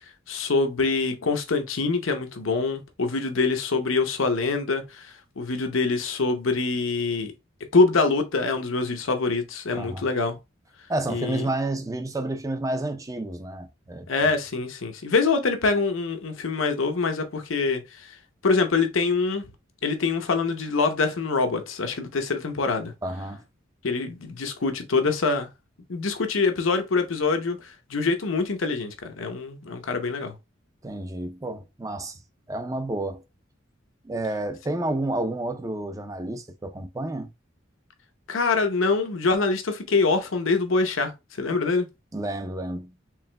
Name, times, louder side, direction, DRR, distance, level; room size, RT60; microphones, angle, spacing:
voice 1, 0.3-7.3 7.7-10.4 11.1-11.5 14.1-18.1 18.4-19.5 19.8-22.9 23.8-25.5 25.9-30.3 38.3-41.1 41.4-41.9, left 4 dB, 90° left, 0.8 m, -25 dB
voice 2, 9.7-10.1 10.9-14.1 23.0-23.4 30.8-32.2 32.5-33.2 34.0-37.3 42.1-42.9, right 2 dB, 15° right, 0.5 m, -30 dB
4.7 x 3.4 x 2.2 m
head